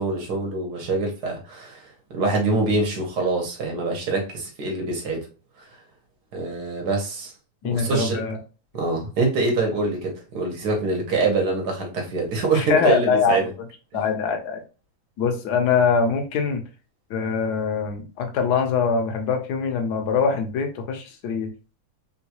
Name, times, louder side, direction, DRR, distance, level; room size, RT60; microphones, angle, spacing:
voice 1, 0.0-1.8 2.1-5.3 6.3-7.3 7.6-8.2 8.7-13.5 13.9-14.0, right 3 dB, 75° right, 1.5 m, -25 dB
voice 2, 7.6-8.4 12.5-13.4 13.9-14.6 15.2-16.6 17.1-21.5, left 5 dB, 75° left, 1.3 m, -23 dB
3.6 x 2.3 x 2.8 m
omnidirectional pair, 1.8 m